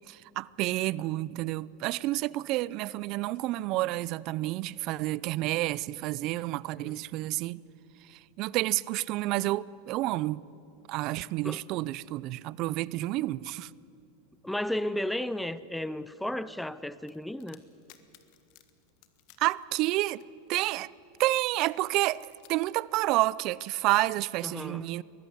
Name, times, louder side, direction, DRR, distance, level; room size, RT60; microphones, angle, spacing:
voice 1, 0.1-7.6 8.1-10.4 10.9-13.7 19.4-20.2 20.5-20.9 21.2-25.0, right 18 dB, 50° right, 0.5 m, -29 dB
voice 2, 14.4-17.6 24.4-24.9, left 1 dB, 5° left, 0.6 m, -34 dB
sound 1, 17.1-20.5 21.1-22.5, left 17 dB, 55° left, 1.5 m, -57 dB
22.0 x 14.5 x 9.6 m
supercardioid pair, 120°, 0 cm